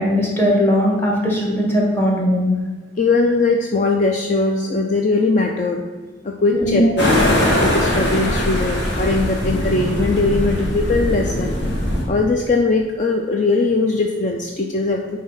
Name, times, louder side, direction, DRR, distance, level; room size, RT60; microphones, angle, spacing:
voice 1, 0.0-2.5 6.5-6.8, equal, 10° left, -2 dB, 1.5 m, -19 dB
voice 2, 3.0-5.8 6.2-7.3 7.6-11.6 12.1-15.2, left 3 dB, 40° left, 2 dB, 0.5 m, -20 dB
sound 1, 7.0-12.0, left 1 dB, 65° left, 1.8 m, -20 dB
8.9 x 3.2 x 5.6 m, 1.4 s
head